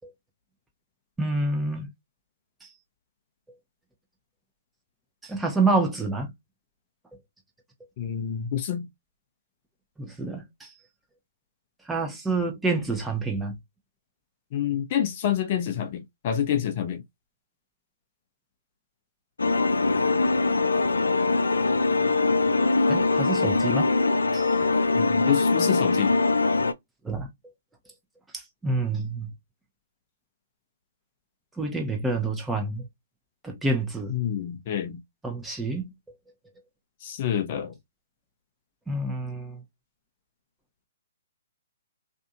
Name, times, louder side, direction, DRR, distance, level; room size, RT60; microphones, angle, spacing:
voice 1, 1.2-1.9 2.6-2.7 5.2-6.3 10.0-10.7 11.8-13.6 22.9-23.9 24.3-24.7 27.0-27.3 28.3-29.3 31.6-32.9 33.4-34.2 35.2-36.2 38.9-39.6, right 3 dB, 5° right, 0.8 m, -28 dB
voice 2, 8.0-8.9 14.5-17.0 25.0-26.1 34.1-35.0 37.0-37.7, left 9 dB, 45° left, 0.6 m, -27 dB
sound 1, 19.4-26.7, left 3 dB, 90° left, 0.3 m, -22 dB
2.6 x 2.5 x 2.3 m
hypercardioid pair, 130°, 0 cm